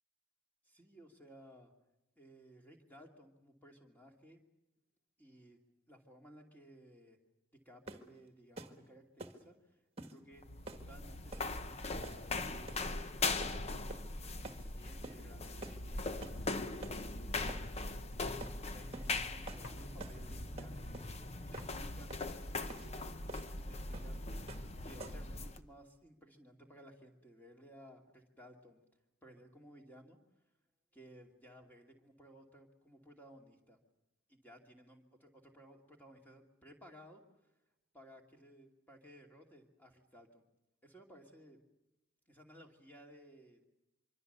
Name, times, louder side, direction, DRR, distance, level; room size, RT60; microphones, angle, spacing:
voice 1, 0.6-1.7 2.2-4.4 5.2-5.6 5.9-7.2 7.6-10.4 10.7-11.9 12.5-14.0 14.5-16.4 16.7-17.7 18.2-20.9 21.4-22.2 22.7-23.3 23.6-24.2 24.8-28.8 29.2-30.2 30.9-33.8 34.4-37.2 37.9-40.4 40.8-41.6 42.3-43.6, equal, 10° left, 2 dB, 2.6 m, -58 dB
sound 1, 7.9-8.1 8.6-8.8 9.2-9.4 10.0-10.2 10.7-10.9 11.3-11.5 12.0-12.3 12.7-12.9 13.4-13.6 13.9-14.2 14.4-14.6 15.0-15.2 15.6-15.8 16.2-16.4 16.8-17.0 17.5-17.7 18.4-18.6 18.9-19.1 19.5-19.7 20.0-20.2 20.6-21.1 21.5-21.7 22.1-22.3 22.7-22.9 23.3-23.5 23.9-24.1 24.5-24.7 25.0-25.3, right 2 dB, 30° right, 1.6 m, -48 dB
sound 2, 10.3-25.6, left 3 dB, 30° left, 0.9 m, -40 dB
sound 3, 19.5-24.0, left 1 dB, 75° left, 3.1 m, -61 dB
25.0 x 24.5 x 6.8 m, 0.91 s
head